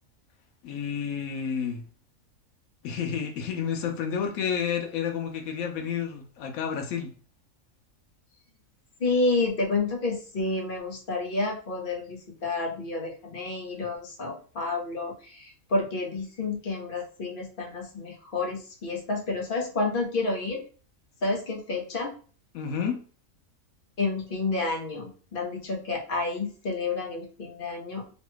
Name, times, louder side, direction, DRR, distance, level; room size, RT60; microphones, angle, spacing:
voice 1, 0.6-1.8 2.8-7.1 22.5-23.0, left 7 dB, 85° left, 1.1 m, -30 dB
voice 2, 9.0-20.7 21.2-22.1 24.0-28.1, left 3 dB, 45° left, 0.9 m, -30 dB
3.1 x 2.3 x 3.0 m
omnidirectional pair, 1.4 m